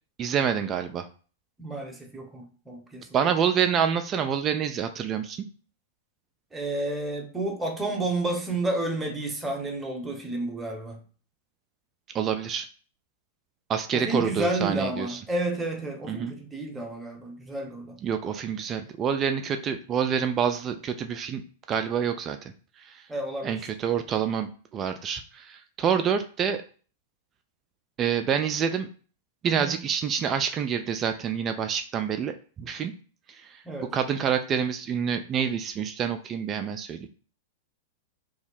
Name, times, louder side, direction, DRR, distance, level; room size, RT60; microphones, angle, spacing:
voice 1, 0.2-1.1 3.1-5.4 12.1-12.7 13.7-15.2 16.1-16.3 18.0-21.4 21.7-22.5 22.8-23.0 23.4-26.6 28.0-28.9 29.4-32.9 33.3-33.6 33.9-37.1, right 7 dB, 30° right, 7 dB, 0.3 m, -27 dB
voice 2, 1.6-3.3 6.5-11.0 13.9-18.0 23.1-23.6 29.4-29.8 33.6-33.9, right 2 dB, 10° right, 1 dB, 0.8 m, -31 dB
2.7 x 2.0 x 3.9 m, 0.40 s
figure-of-eight pair, 95°, 0 cm